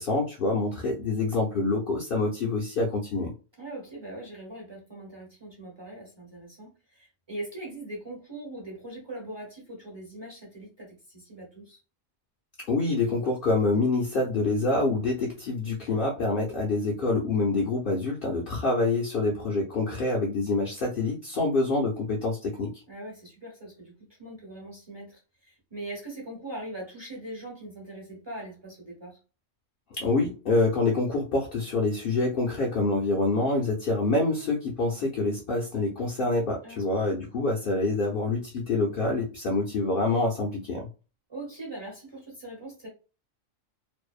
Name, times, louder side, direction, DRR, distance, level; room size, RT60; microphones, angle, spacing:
voice 1, 0.0-3.3 12.7-22.8 29.9-40.9, left 3 dB, 60° left, 0.6 m, -26 dB
voice 2, 3.6-11.8 22.9-29.2 36.6-36.8 41.3-42.9, right 1 dB, 25° right, 0.8 m, -41 dB
2.6 x 2.1 x 2.3 m
omnidirectional pair, 1.3 m